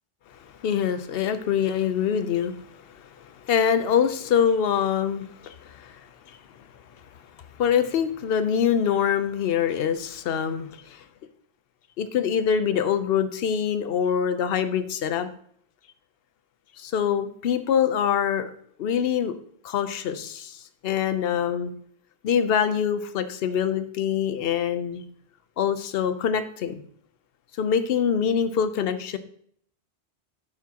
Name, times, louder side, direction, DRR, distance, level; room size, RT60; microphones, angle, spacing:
voice 1, 0.3-3.1 3.4-6.7 7.6-11.0 12.0-15.3 16.8-18.5 18.8-19.4 19.6-21.7 22.2-25.0 25.6-26.8 27.6-29.2, left 8 dB, 65° left, 11 dB, 0.8 m, -25 dB
10.5 x 6.0 x 2.9 m, 0.64 s
omnidirectional pair, 1.1 m